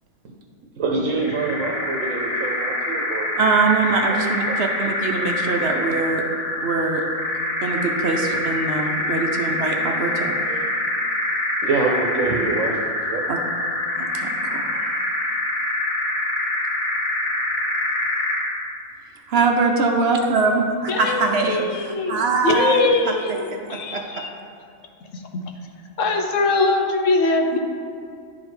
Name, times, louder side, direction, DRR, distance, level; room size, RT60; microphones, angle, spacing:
voice 1, 0.7-3.5 4.1-4.6 8.8-10.7 11.6-12.8 13.1-13.3, right 3 dB, 80° right, 0 dB, 1.1 m, -27 dB
sound 1, 1.2-18.6, left 1 dB, 40° left, 1.1 m, -25 dB
voice 2, 3.4-6.2 6.6-7.0 7.6-10.3 13.3-13.4 14.0-14.9 19.3-23.2 23.5-24.2 27.5-27.6, right 3 dB, 60° right, 3 dB, 0.8 m, -23 dB
voice 3, 20.9-21.2 21.5-24.3 25.1-25.4 26.0-27.6, left 3 dB, 75° left, 3 dB, 1.0 m, -22 dB
10.5 x 5.0 x 3.2 m, 2.3 s
omnidirectional pair, 1.4 m